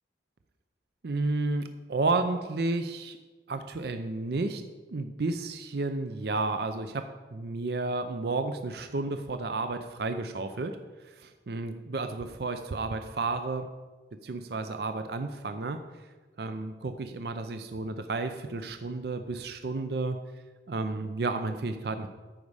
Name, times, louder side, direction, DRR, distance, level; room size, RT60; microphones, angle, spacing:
voice 1, 1.0-3.2 3.5-4.6 4.9-7.1 7.3-10.8 11.0-13.7 14.2-15.8 16.4-20.2 20.7-22.1, right 3 dB, 60° right, 8 dB, 0.5 m, -32 dB
13.5 x 5.3 x 4.8 m, 1.3 s
head